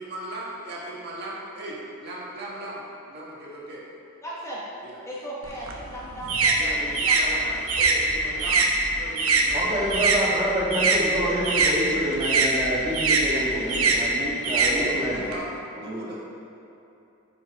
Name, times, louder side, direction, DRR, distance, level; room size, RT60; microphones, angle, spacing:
voice 1, 0.0-3.8 4.8-5.0 6.6-9.9 13.2-14.1 14.6-16.2, right 1 dB, 50° right, -6 dB, 1.6 m, -37 dB
voice 2, 4.2-4.6 5.0-7.5, right 1 dB, 15° left, -7 dB, 1.3 m, -37 dB
sound 1, 5.4-10.2 10.5-15.3, right 3 dB, 80° right, 1.0 m, -23 dB
voice 3, 9.5-15.2 15.7-16.1, equal, 20° right, -7 dB, 1.7 m, -27 dB
8.7 x 5.9 x 4.7 m, 2.8 s
head